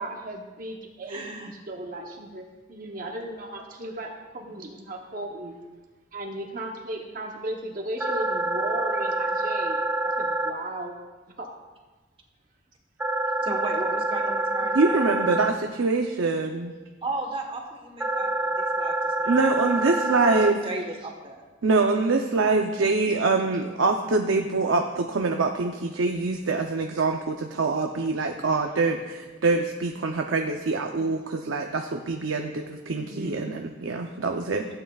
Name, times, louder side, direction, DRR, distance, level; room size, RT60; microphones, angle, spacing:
voice 1, 0.0-2.4 2.7-5.5 6.1-9.8 10.0-10.9 11.4-11.5 30.9-31.2 32.9-33.5, right 1 dB, 45° right, 1 dB, 0.9 m, -36 dB
voice 2, 1.1-1.5 13.4-15.1 17.0-20.1 20.3-21.4, right 2 dB, 30° right, 2 dB, 1.2 m, -35 dB
sound 1, 8.0-10.5 13.0-15.5 18.0-20.5, right 2 dB, 10° right, 0.5 m, -26 dB
voice 3, 14.7-16.7 19.3-20.6 21.6-34.7, right 3 dB, 90° right, 4 dB, 0.6 m, -24 dB
15.5 x 8.8 x 2.4 m, 1.3 s
head